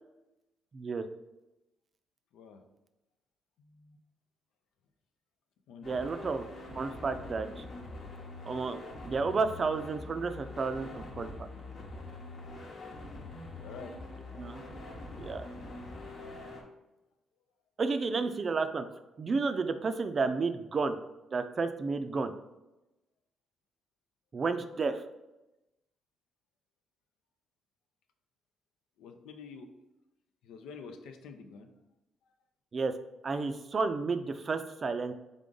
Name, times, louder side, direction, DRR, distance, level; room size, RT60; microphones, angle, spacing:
voice 1, 0.7-1.1 5.8-6.4 6.7-7.6 8.5-8.8 9.0-11.5 14.4-14.6 15.2-15.5 17.8-18.8 19.2-21.0 21.3-22.3 24.3-25.0 32.7-32.9 33.2-35.1, right 4 dB, 40° right, 9 dB, 0.4 m, -31 dB
voice 2, 3.6-4.0 5.7-6.0 13.6-14.0 29.0-29.7 30.4-31.7, left 5 dB, 85° left, 6 dB, 0.5 m, -47 dB
sound 1, 5.8-16.6, left 2 dB, 60° left, 1.0 m, -44 dB
3.7 x 3.7 x 3.8 m, 0.99 s
cardioid pair, 90°, 0 cm